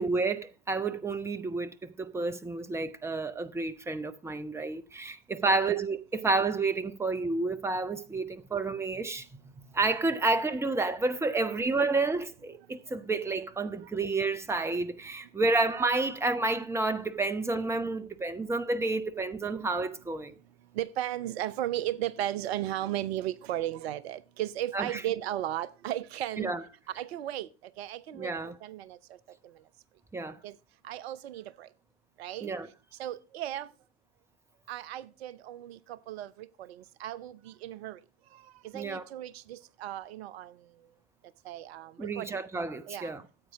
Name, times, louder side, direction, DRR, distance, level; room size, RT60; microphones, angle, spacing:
voice 1, 0.0-20.3 24.7-25.0 26.4-26.6 28.1-28.5 30.1-30.4 32.4-32.7 38.7-39.0 42.0-43.2, right 3 dB, 5° right, 0.8 m, -30 dB
voice 2, 5.4-5.7 20.8-26.5 26.9-27.5 27.8-29.0 30.4-30.5 30.8-31.7 32.2-32.5 33.0-33.7 34.7-38.0 38.3-40.5 41.4-42.3 42.9-43.1, right 13 dB, 55° right, 0.7 m, -35 dB
14.5 x 8.3 x 3.6 m
figure-of-eight pair, 75°, 37 cm